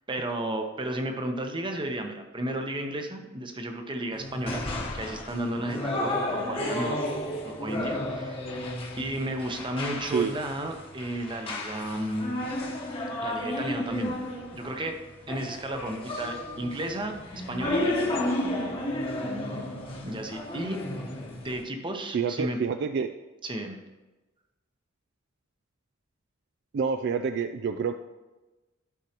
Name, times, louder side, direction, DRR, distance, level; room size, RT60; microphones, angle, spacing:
voice 1, 0.1-4.7 4.9-7.0 7.4-8.4 9.0-12.3 13.2-14.1 14.5-15.0 15.3-17.2 17.5-18.3 20.0-20.8 21.3-22.6 23.4-23.8, right 1 dB, 25° right, 4 dB, 0.8 m, -33 dB
sound 1, 4.1-21.6, left 1 dB, 25° left, 1.0 m, -33 dB
voice 2, 22.1-23.1 26.7-27.9, right 6 dB, 55° right, 8 dB, 0.3 m, -28 dB
12.0 x 5.3 x 2.9 m, 1.1 s
head